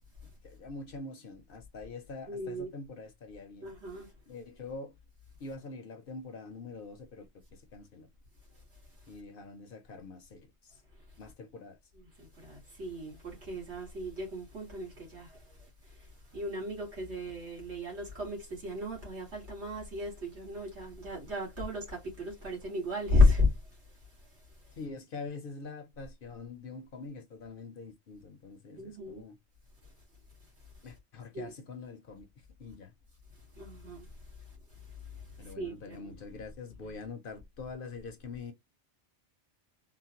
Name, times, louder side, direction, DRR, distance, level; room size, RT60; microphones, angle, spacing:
voice 1, 0.4-3.7 4.3-4.9 5.4-8.1 9.1-10.8 11.2-11.8 24.8-29.4 30.8-32.3 32.6-32.9 35.4-38.5, left 4 dB, 60° left, 0.7 m, -44 dB
voice 2, 2.3-2.7 3.6-4.1 11.9-23.5 28.8-29.2 31.3-31.5 33.6-34.1 34.7-36.2 36.8-37.0, left 2 dB, 75° right, 2.1 m, -33 dB
3.7 x 2.1 x 2.8 m
omnidirectional pair, 1.2 m